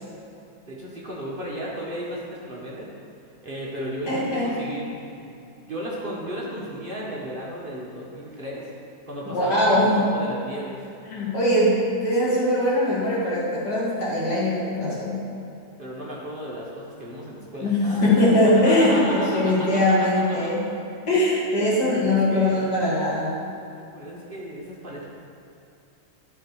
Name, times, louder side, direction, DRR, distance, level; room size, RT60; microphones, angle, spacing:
voice 1, 0.7-2.9 3.4-5.4 5.7-8.7 9.1-10.8 15.8-20.5 22.0-22.9 23.8-25.1, equal, 35° right, -5 dB, 1.2 m, -34 dB
voice 2, 4.1-4.5 9.3-10.0 11.0-15.2 17.6-20.6 21.1-23.3, left 1 dB, 80° left, -7 dB, 2.6 m, -21 dB
11.0 x 4.6 x 4.7 m, 2.7 s
omnidirectional pair, 1.8 m